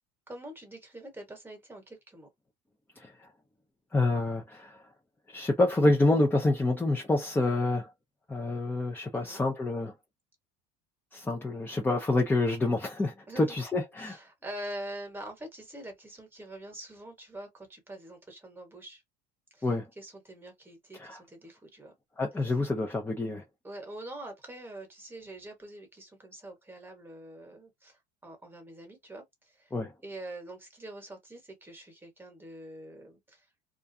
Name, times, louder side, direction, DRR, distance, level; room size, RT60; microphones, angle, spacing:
voice 1, 0.3-2.3 9.1-9.5 13.3-13.6 14.0-19.0 19.5-21.9 22.4-22.6 23.6-29.7 30.0-33.5, right 1 dB, 10° right, 1.1 m, -45 dB
voice 2, 3.9-4.8 5.3-7.9 8.3-9.9 11.1-14.2 19.6-19.8 21.0-21.2 22.2-23.4 29.7-29.9, left 2 dB, 10° left, 0.5 m, -27 dB
2.4 x 2.2 x 2.6 m
supercardioid pair, 115°, 19 cm